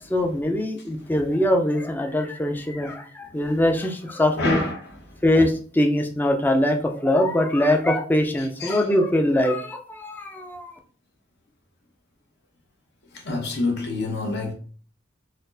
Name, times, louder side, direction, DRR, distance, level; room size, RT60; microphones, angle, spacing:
voice 1, 0.1-4.6 5.2-10.7, left 1 dB, 10° left, 0.4 m, -22 dB
voice 2, 4.4-4.7 8.6-8.8 13.3-14.5, left 2 dB, 60° left, 0.8 m, -26 dB
4.1 x 2.0 x 2.7 m
head